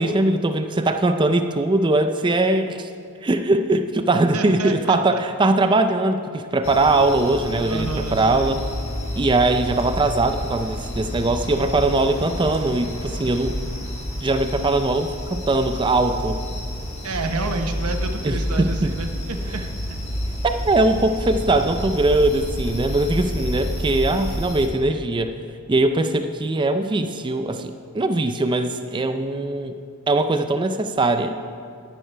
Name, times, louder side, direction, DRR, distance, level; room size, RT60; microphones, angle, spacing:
voice 1, 0.0-2.9 3.2-8.6 9.2-13.6 14.2-16.4 18.2-18.9 20.4-25.4 25.7-29.8 30.1-31.4, right 2 dB, 20° right, 8 dB, 0.4 m, -21 dB
voice 2, 4.3-5.2 7.7-8.6 17.0-19.6, right 3 dB, 85° right, 5 dB, 0.8 m, -29 dB
sound 1, 6.6-24.7, equal, 30° left, 1.4 m, -29 dB
13.5 x 11.0 x 3.3 m, 2.3 s
head